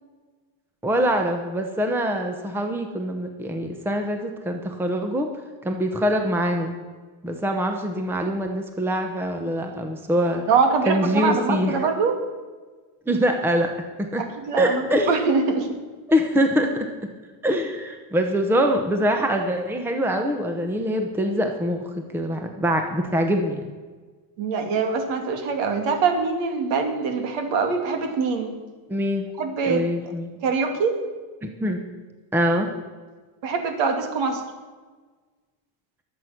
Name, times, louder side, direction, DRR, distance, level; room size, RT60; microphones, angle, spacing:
voice 1, 0.8-5.3 5.6-6.8 7.2-10.4 10.9-11.8 13.1-13.7 14.0-14.2 14.6-15.2 16.1-16.9 17.4-23.6 28.9-29.3 29.7-30.3 31.4-31.8 32.3-32.7, equal, 5° right, 5 dB, 0.9 m, -24 dB
voice 2, 10.5-12.1 14.2-15.7 24.4-28.6 29.4-29.8 30.4-31.0 33.4-34.4, right 5 dB, 60° right, 5 dB, 2.8 m, -23 dB
22.0 x 8.2 x 6.0 m, 1.4 s
cardioid pair, 160°, 48 cm